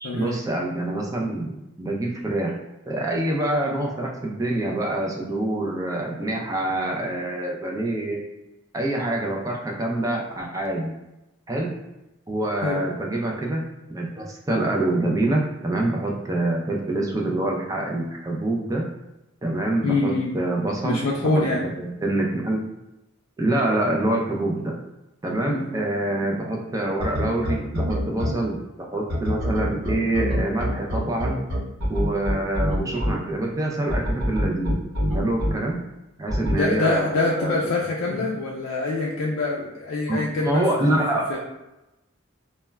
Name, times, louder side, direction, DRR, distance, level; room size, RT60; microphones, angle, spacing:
voice 1, 0.0-2.5 2.9-8.2 8.7-10.9 11.5-11.7 12.3-13.6 13.9-18.9 19.4-22.7 23.4-24.8 25.2-31.4 31.9-34.7 35.1-35.8 36.2-37.6 38.1-38.2 40.1-41.4, right 1 dB, 15° right, -1 dB, 0.3 m, -26 dB
voice 2, 19.8-20.3 20.8-21.6 25.5-25.7 36.5-41.0 41.3-41.4, left 2 dB, 75° left, -3 dB, 0.4 m, -25 dB
sound 1, 27.0-28.3 29.1-33.1 33.9-35.5 36.3-36.6, equal, 90° right, 0.9 m, -24 dB
2.2 x 2.1 x 3.3 m, 0.95 s
head